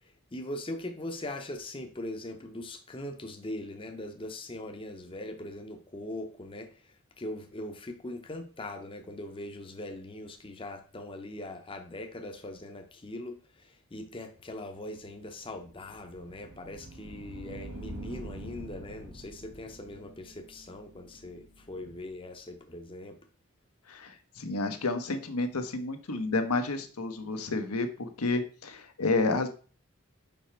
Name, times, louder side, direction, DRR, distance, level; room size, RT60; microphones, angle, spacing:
voice 1, 0.3-23.2, left 1 dB, 25° left, 5 dB, 0.7 m, -41 dB
sound 1, 15.2-22.0, right 1 dB, 75° right, 1.0 m, -46 dB
voice 2, 23.9-29.5, left 3 dB, 85° left, 7 dB, 0.9 m, -30 dB
5.3 x 4.8 x 4.4 m, 0.38 s
head